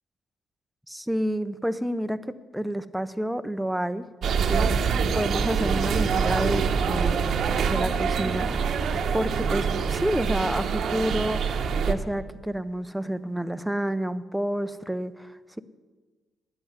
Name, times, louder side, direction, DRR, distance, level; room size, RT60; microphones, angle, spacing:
voice 1, 0.9-4.1 4.4-7.3 7.7-8.8 9.1-15.6, right 1 dB, 5° right, 12 dB, 0.6 m, -29 dB
sound 1, 4.2-11.9, right 6 dB, 65° right, 0.9 m, -25 dB
9.7 x 7.8 x 9.4 m, 1.3 s
cardioid pair, 90°, 0 cm